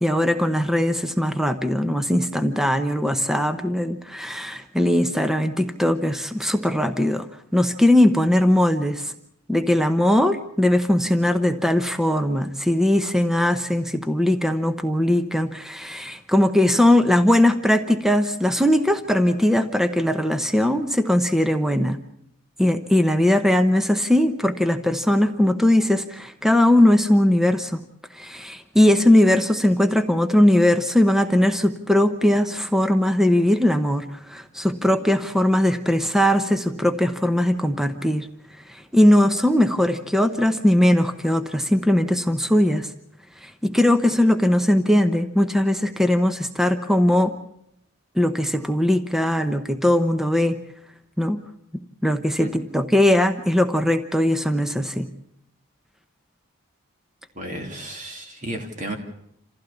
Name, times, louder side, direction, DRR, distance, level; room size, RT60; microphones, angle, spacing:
voice 1, 0.0-9.1 9.5-22.0 22.6-27.8 28.1-38.3 38.7-42.9 43.4-47.4 48.1-50.6 51.2-51.4 52.0-55.1, left 1 dB, ahead, 9 dB, 0.9 m, -20 dB
voice 2, 57.3-59.0, right 1 dB, 35° right, 3 dB, 2.8 m, -33 dB
27.5 x 15.5 x 7.1 m, 0.76 s
head